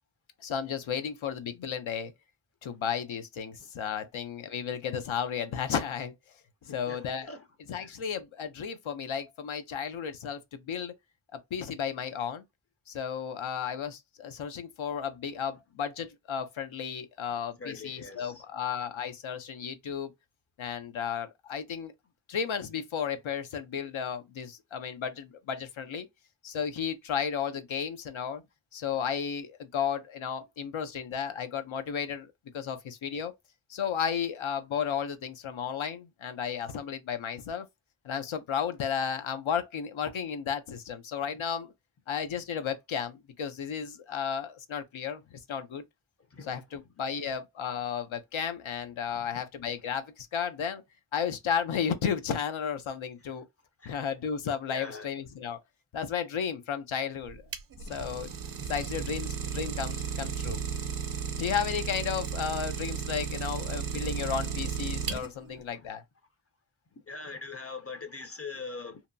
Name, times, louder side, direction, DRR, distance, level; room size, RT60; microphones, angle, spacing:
voice 1, 0.4-2.1 2.6-6.1 6.6-7.3 7.7-10.9 11.3-12.4 12.9-20.1 20.6-21.9 22.3-26.1 26.4-28.4 28.7-33.3 33.7-37.7 38.0-41.7 42.1-45.8 46.5-50.8 51.1-53.4 53.9-55.6 55.9-57.4 57.8-58.3 58.7-60.6 61.4-66.0, left 7 dB, 75° left, 0.6 m, -33 dB
voice 2, 6.7-7.4 7.7-8.0 17.6-18.4 46.3-46.6 49.1-49.4 53.8-54.0 54.7-55.1 64.1-64.3 65.0-65.1 65.5-65.9 66.9-69.0, left 4 dB, 30° left, 0.5 m, -43 dB
Idling, 57.2-65.6, right 7 dB, 45° right, 0.5 m, -34 dB
2.8 x 2.2 x 2.5 m
wide cardioid pair, 65°, 48 cm